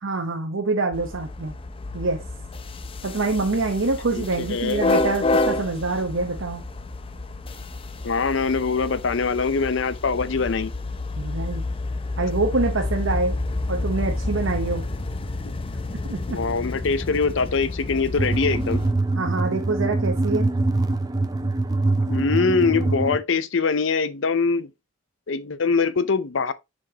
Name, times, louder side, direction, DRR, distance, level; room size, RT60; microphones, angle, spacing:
voice 1, 0.0-1.5 1.9-2.2 3.0-6.6 11.2-11.6 12.2-13.4 13.7-14.9 16.1-16.4 19.2-20.5, right 3 dB, 80° right, 0.9 m, -25 dB
sound 1, 0.9-18.9, left 2 dB, 30° left, 0.6 m, -29 dB
voice 2, 4.1-4.8 8.0-10.7 16.3-18.8 22.1-24.7 25.3-26.5, left 4 dB, 70° left, 0.6 m, -23 dB
sound 2, 18.2-23.2, right 2 dB, 20° right, 0.6 m, -23 dB
7.3 x 5.2 x 2.8 m
head